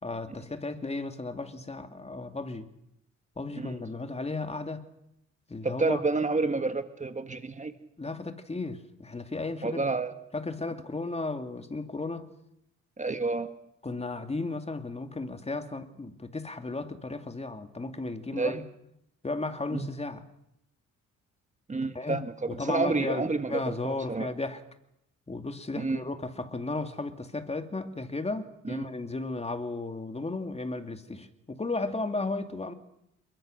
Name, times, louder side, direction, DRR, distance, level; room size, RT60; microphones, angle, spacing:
voice 1, 0.0-2.7 3.4-4.9 5.5-6.0 8.0-9.9 10.3-12.3 13.8-18.6 19.2-20.3 21.9-22.2 22.5-24.6 25.3-32.7, left 3 dB, 20° left, 2.5 m, -34 dB
voice 2, 5.6-7.7 9.6-10.1 13.0-13.5 18.3-18.6 19.7-19.9 21.7-24.3 25.8-26.0 28.6-28.8, right 3 dB, 25° right, 1.8 m, -29 dB
28.0 x 22.5 x 6.6 m
cardioid pair, 90°, 30 cm